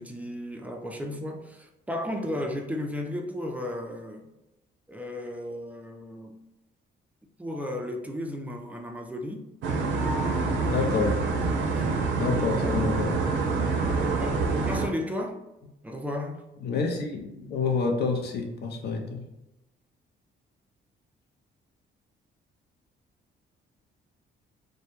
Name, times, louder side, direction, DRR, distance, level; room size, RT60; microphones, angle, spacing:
voice 1, 0.0-4.3 4.9-6.4 7.4-9.5 10.6-10.9 11.5-11.9 14.2-15.4 15.8-16.4, left 1 dB, 5° right, 0.3 m, -34 dB
sound 1, 9.6-14.9, right 4 dB, 75° right, 0.4 m, -26 dB
voice 2, 10.7-11.2 12.1-13.2 16.6-19.2, left 4 dB, 55° left, 0.5 m, -28 dB
2.1 x 2.1 x 2.9 m
cardioid pair, 90°, 20 cm